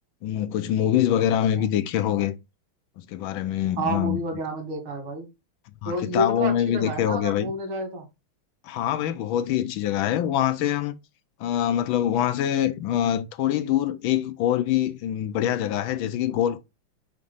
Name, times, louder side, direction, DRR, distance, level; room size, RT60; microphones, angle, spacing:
voice 1, 0.2-2.3 3.0-4.2 5.8-7.5 8.6-11.0 11.4-16.6, left 11 dB, 80° left, 1.4 m, -24 dB
voice 2, 3.8-5.3 5.8-8.1, right 1 dB, 90° right, 2.8 m, -30 dB
5.3 x 3.7 x 5.4 m
omnidirectional pair, 2.3 m